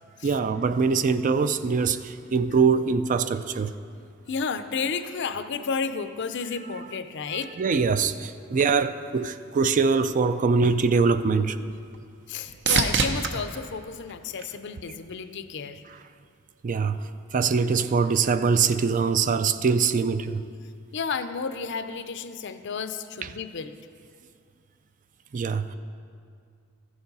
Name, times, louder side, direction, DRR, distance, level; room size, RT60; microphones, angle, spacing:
voice 1, 0.2-3.7 7.3-11.6 15.9-16.0 16.6-17.0 17.3-20.4 23.2-23.3 25.3-25.7, right 5 dB, 40° right, 0.4 m, -23 dB
voice 2, 4.3-7.5 12.3-15.8 20.9-23.8, left 5 dB, 60° left, 0.5 m, -32 dB
sound 1, 10.9-15.1 15.7-16.3 24.1-24.2, right 4 dB, 60° right, 0.7 m, -30 dB
14.0 x 7.1 x 5.4 m
head